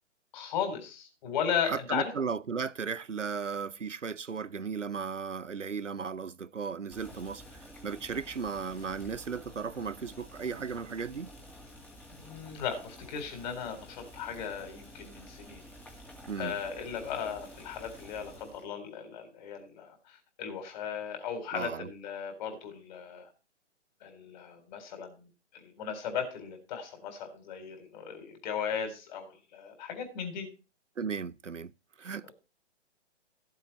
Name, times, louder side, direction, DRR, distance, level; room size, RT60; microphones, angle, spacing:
voice 1, 0.3-2.1 12.1-15.6 16.4-23.3 24.0-25.2 25.5-30.5, left 7 dB, 40° left, 4.0 m, -36 dB
voice 2, 1.6-7.4 7.8-11.3 16.3-16.6 21.5-21.9 31.0-31.7 32.0-32.3, right 5 dB, 90° right, 0.7 m, -35 dB
Boiling, 6.9-18.7, equal, 5° left, 2.1 m, -50 dB
15.0 x 7.9 x 4.2 m
figure-of-eight pair, 125°, 36 cm